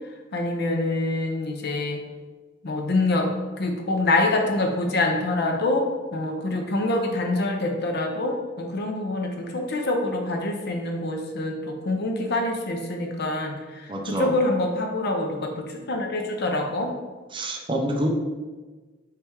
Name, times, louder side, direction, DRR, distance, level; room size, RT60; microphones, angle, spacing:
voice 1, 0.3-2.0 2.6-3.3 3.6-5.8 6.1-16.9, left 2 dB, 55° left, 2 dB, 0.6 m, -25 dB
voice 2, 13.9-14.3 17.3-18.1, right 1 dB, 25° right, 2 dB, 0.5 m, -26 dB
3.4 x 3.4 x 4.4 m, 1.3 s
head